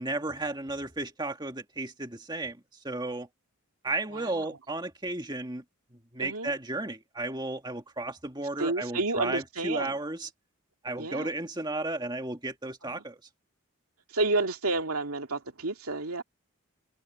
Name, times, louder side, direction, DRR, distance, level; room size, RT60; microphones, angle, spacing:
voice 1, 0.0-3.3 3.8-5.6 6.1-10.3 10.8-13.2, right 2 dB, 20° right, 1.9 m, -34 dB
voice 2, 4.1-4.5 6.2-6.5 8.6-10.0 11.0-11.3 12.8-13.0 14.1-16.2, right 3 dB, 85° right, 2.4 m, -30 dB
head